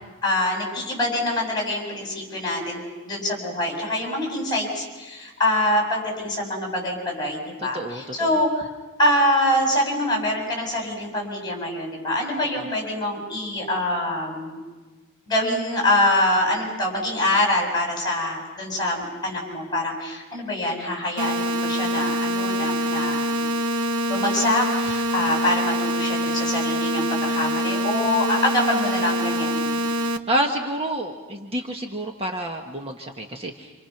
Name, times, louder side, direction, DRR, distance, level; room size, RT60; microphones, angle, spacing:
voice 1, 0.2-8.7 9.0-14.6 15.3-23.5 24.1-29.8, left 1 dB, 20° left, 0 dB, 7.5 m, -25 dB
voice 2, 7.6-8.4 12.4-12.6 30.3-33.7, right 1 dB, 25° right, 2 dB, 1.4 m, -29 dB
sound 1, 21.2-30.2, equal, 80° right, 1.3 m, -25 dB
29.0 x 27.5 x 5.9 m, 1.3 s
head